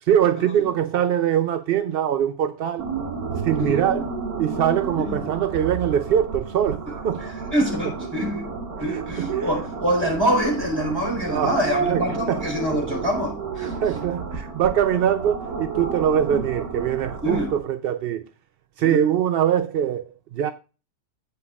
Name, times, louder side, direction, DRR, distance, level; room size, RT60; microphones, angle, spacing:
voice 1, 0.0-2.9 3.4-4.1 4.4-7.2 8.8-9.5 11.3-11.6 11.9-12.4 13.6-18.2 18.8-20.5, right 9 dB, 65° right, 0.6 m, -23 dB
sound 1, 2.8-17.6, right 5 dB, 90° right, 2.1 m, -31 dB
voice 2, 4.9-5.2 7.2-8.5 8.8-13.7 17.2-17.5 18.8-19.0, equal, 15° right, 4.0 m, -25 dB
17.0 x 5.9 x 2.4 m
omnidirectional pair, 1.5 m